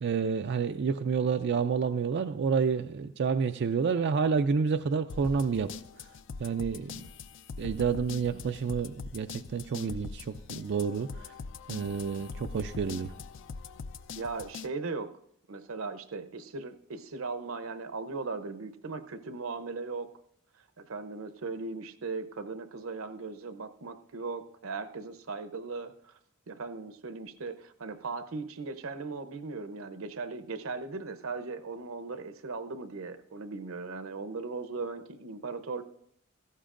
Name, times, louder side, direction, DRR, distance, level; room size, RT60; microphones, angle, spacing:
voice 1, 0.0-5.7 6.4-7.0 7.6-11.3 11.7-13.1, right 5 dB, 55° right, 8 dB, 0.4 m, -29 dB
sound 1, 5.1-14.7, left 5 dB, 65° left, 0.4 m, -42 dB
voice 2, 14.2-15.1 15.5-20.1 20.8-26.1 26.5-35.8, right 4 dB, 90° right, 10 dB, 0.8 m, -38 dB
16.5 x 14.0 x 2.5 m, 0.72 s
head